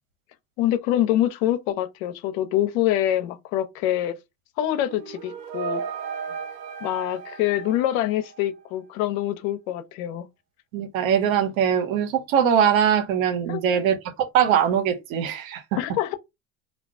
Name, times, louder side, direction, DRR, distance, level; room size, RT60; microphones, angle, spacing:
voice 1, 0.6-4.1 4.6-5.8 6.8-10.2 13.5-13.9 15.8-16.1, left 12 dB, 70° left, 0.7 m, -25 dB
sound 1, 4.8-8.7, right 6 dB, 60° right, 0.8 m, -35 dB
voice 2, 10.7-15.8, right 8 dB, 80° right, 0.9 m, -22 dB
2.4 x 2.2 x 3.6 m
hypercardioid pair, 85°, 41 cm